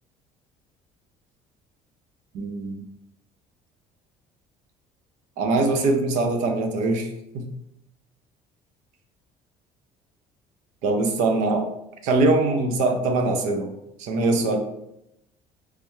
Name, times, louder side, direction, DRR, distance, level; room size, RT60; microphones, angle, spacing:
voice 1, 2.3-2.8 5.4-7.1 7.3-7.5 10.8-11.7 12.0-13.7 14.0-14.6, right 2 dB, 70° right, 4 dB, 0.7 m, -22 dB
3.4 x 3.2 x 3.1 m, 0.82 s
cardioid pair, 155°, 13 cm